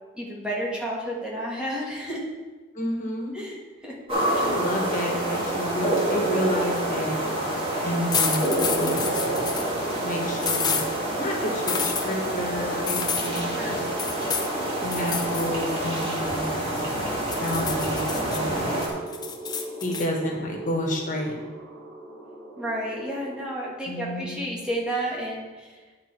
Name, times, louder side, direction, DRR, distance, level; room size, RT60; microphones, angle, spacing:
voice 1, 0.1-2.2 3.3-4.0 4.3-4.5 13.5-13.9 22.6-25.7, right 1 dB, 5° right, -4 dB, 1.5 m, -31 dB
voice 2, 2.7-3.3 4.4-7.1 7.8-9.6 10.0-13.8 14.8-17.0 17.3-18.8 19.8-21.4 23.8-24.4, equal, 40° left, -1 dB, 1.5 m, -30 dB
sound 1, 4.1-18.9, right 1 dB, 25° right, 1.7 m, -27 dB
sound 2, 8.1-9.7 10.4-10.9 11.7-12.1 12.9-13.4 14.0-14.5 14.9-15.5 15.8-16.9 17.3-18.4 18.8-20.1, left 6 dB, 20° left, 0.6 m, -29 dB
sound 3, 9.6-23.4, right 2 dB, 80° right, 1.9 m, -42 dB
9.6 x 5.0 x 4.5 m, 1.3 s
head